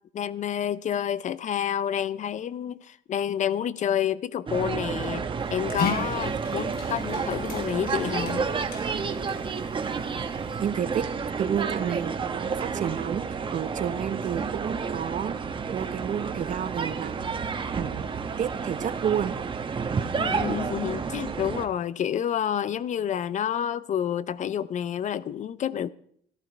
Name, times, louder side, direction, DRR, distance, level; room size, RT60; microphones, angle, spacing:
voice 1, 0.1-8.5 20.2-25.9, left 9 dB, 45° left, 0.5 m, -29 dB
sound 1, 4.5-21.7, right 5 dB, 30° right, 1.1 m, -30 dB
Dog, 5.4-10.7, left 5 dB, 65° left, 3.4 m, -37 dB
voice 2, 10.6-11.0 11.4-15.4 15.7-17.3 17.8-19.3, right 9 dB, 50° right, 0.8 m, -30 dB
14.0 x 11.5 x 4.5 m
cardioid pair, 110°, 17 cm